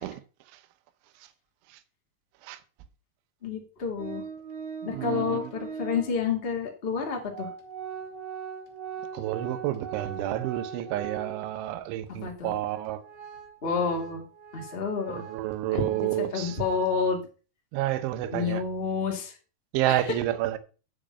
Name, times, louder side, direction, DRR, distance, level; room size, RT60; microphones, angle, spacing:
voice 1, 3.4-4.2 4.8-7.5 12.1-12.5 13.6-14.2 14.5-15.2 15.7-17.2 18.3-19.3 19.9-20.1, left 5 dB, 50° left, 0.6 m, -29 dB
Organ, 4.0-6.2 7.0-7.1 7.3-11.7 12.1-12.2 12.6-17.0, right 7 dB, 45° right, 2.9 m, -40 dB
voice 2, 4.9-5.5 9.1-13.0 15.1-16.6 17.7-18.6 19.7-20.6, right 14 dB, 80° right, 3.3 m, -30 dB
10.0 x 6.7 x 5.4 m
omnidirectional pair, 5.5 m